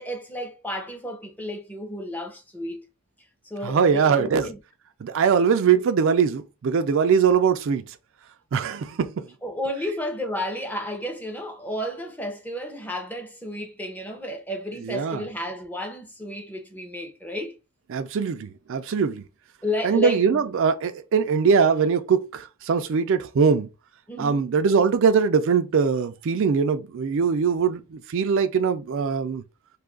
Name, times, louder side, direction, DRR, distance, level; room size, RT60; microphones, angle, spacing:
voice 1, 0.0-2.9 3.4-4.6 9.4-17.5 19.6-20.4 24.1-24.4, left 1 dB, 10° left, 0.6 m, -32 dB
voice 2, 3.6-4.5 5.0-7.8 8.5-9.1 14.8-15.2 17.9-19.2 19.8-23.7 24.2-29.4, right 6 dB, 60° right, 0.4 m, -22 dB
2.7 x 2.4 x 3.7 m
head